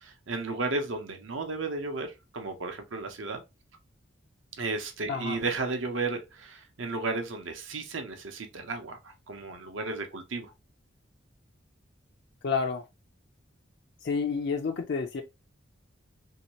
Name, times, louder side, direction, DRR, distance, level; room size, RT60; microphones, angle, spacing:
voice 1, 0.0-3.4 4.6-10.5, right 3 dB, 75° right, 0.8 m, -34 dB
voice 2, 5.1-5.4 12.4-12.9 14.0-15.2, left 5 dB, 55° left, 0.4 m, -29 dB
3.1 x 2.8 x 2.9 m
head